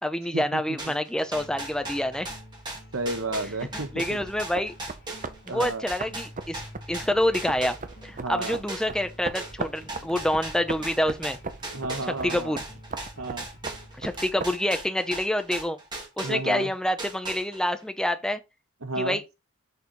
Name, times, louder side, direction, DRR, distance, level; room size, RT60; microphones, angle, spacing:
voice 1, 0.0-2.3 3.7-4.7 5.5-6.6 6.9-7.8 8.0-11.4 12.2-12.6 14.0-15.8 16.2-18.4 19.0-19.2, left 1 dB, 5° left, 0.6 m, -27 dB
sound 1, 0.8-8.1 8.4-16.7 17.0-17.8, right 2 dB, 20° right, 2.2 m, -38 dB
sound 2, 1.2-14.2, equal, 45° left, 1.7 m, -49 dB
voice 2, 2.9-4.2 5.5-5.8 8.2-8.6 11.7-12.6 13.2-13.5 16.2-16.7 18.8-19.2, right 2 dB, 70° right, 1.1 m, -32 dB
sound 3, 4.0-14.5, right 4 dB, 35° right, 0.6 m, -39 dB
6.9 x 4.0 x 4.6 m
head